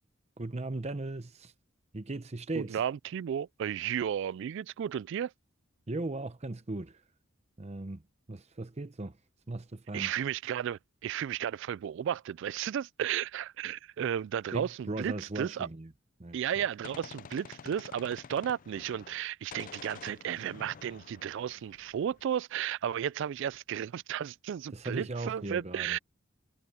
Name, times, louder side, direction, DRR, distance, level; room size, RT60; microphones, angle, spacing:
voice 1, 0.4-1.5 1.9-2.8 5.9-7.0 7.6-8.0 8.3-9.2 9.5-10.1 14.5-15.9 16.2-16.4 24.7-26.0, right 2 dB, 35° right, 0.8 m, -37 dB
voice 2, 2.6-5.3 9.9-15.7 16.3-26.0, right 9 dB, 65° right, 0.3 m, -34 dB
Gunshot gunfire, 16.4-19.3 19.5-22.2, left 6 dB, 45° left, 0.4 m, -49 dB
head